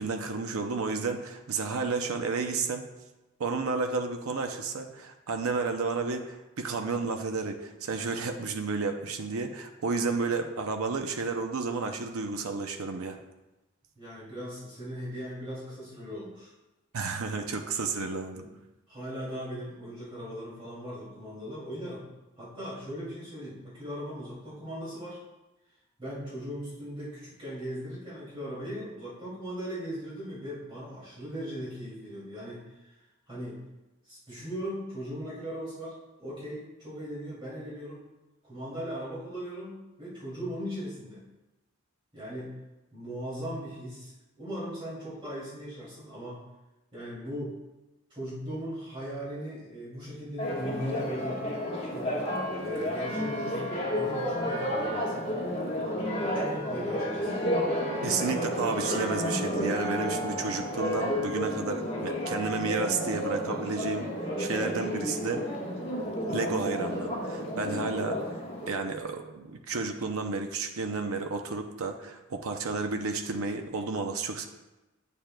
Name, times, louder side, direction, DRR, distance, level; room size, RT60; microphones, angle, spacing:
voice 1, 0.0-2.9 3.4-13.2 16.9-18.4 58.0-65.4 66.3-68.2 68.7-74.5, right 4 dB, 85° right, 5 dB, 0.6 m, -32 dB
voice 2, 14.0-16.5 18.3-18.5 18.9-22.0 22.4-25.2 26.0-33.0 33.3-33.6 34.0-38.0 38.4-41.2 42.1-42.5 42.9-46.4 46.9-47.6 48.1-51.5 51.9-52.1 52.6-55.3 56.2-57.3, equal, 25° right, -9 dB, 2.5 m, -38 dB
Church bell, 50.4-68.7, equal, 30° left, 1.3 m, -31 dB
9.0 x 6.8 x 2.3 m, 1.0 s
head